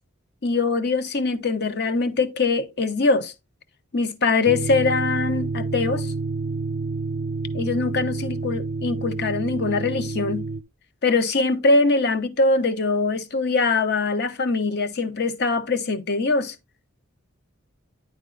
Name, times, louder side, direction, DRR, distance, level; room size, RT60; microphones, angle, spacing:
voice 1, 0.4-3.3 3.9-6.1 7.5-10.4 11.0-16.5, left 3 dB, 55° left, 0.9 m, -22 dB
sound 1, 4.5-10.6, right 3 dB, 45° right, 0.5 m, -29 dB
10.0 x 3.8 x 3.9 m
head